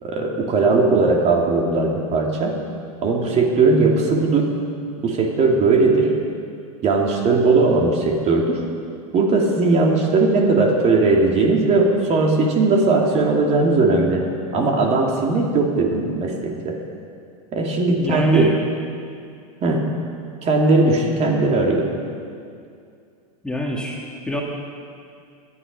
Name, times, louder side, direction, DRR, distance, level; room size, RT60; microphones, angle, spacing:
voice 1, 0.0-2.6 3.0-4.5 5.0-6.1 6.8-8.6 9.1-14.3 14.5-16.8 17.5-18.5 19.6-19.9 20.4-21.9, right 3 dB, 35° right, 0 dB, 2.5 m, -18 dB
voice 2, 18.0-18.6 23.4-24.4, left 1 dB, 5° left, -3 dB, 2.1 m, -25 dB
18.5 x 11.0 x 5.5 m, 2.4 s
hypercardioid pair, 110°, 19 cm